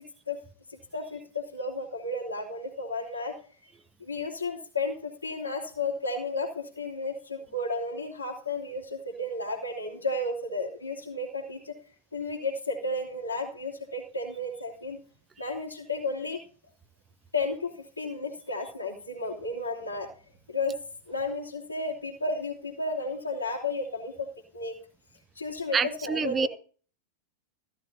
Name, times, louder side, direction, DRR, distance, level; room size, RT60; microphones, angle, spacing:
voice 1, 0.7-3.4 4.0-11.8 12.1-15.0 15.4-16.4 17.3-20.1 20.5-20.8 21.1-24.3 24.5-24.8 25.3-26.5, left 2 dB, 80° left, -6 dB, 2.8 m, -33 dB
voice 2, 25.7-26.5, right 5 dB, 20° right, 15 dB, 0.8 m, -27 dB
15.5 x 12.5 x 2.8 m, 0.41 s
figure-of-eight pair, 90°, 0 cm